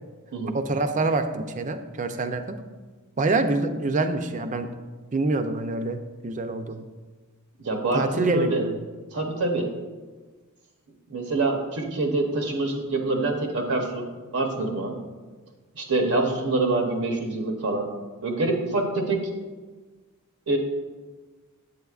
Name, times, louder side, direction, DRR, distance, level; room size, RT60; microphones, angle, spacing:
voice 1, 0.5-2.6 3.2-4.7 5.1-6.8 7.9-8.8, right 3 dB, 35° right, 8 dB, 0.5 m, -26 dB
voice 2, 7.6-8.6 9.1-9.7 11.1-14.1 14.3-15.0 15.7-17.9 18.2-19.2 20.5-20.6, right 2 dB, 85° right, 2 dB, 0.8 m, -25 dB
8.3 x 7.9 x 2.4 m, 1.3 s
head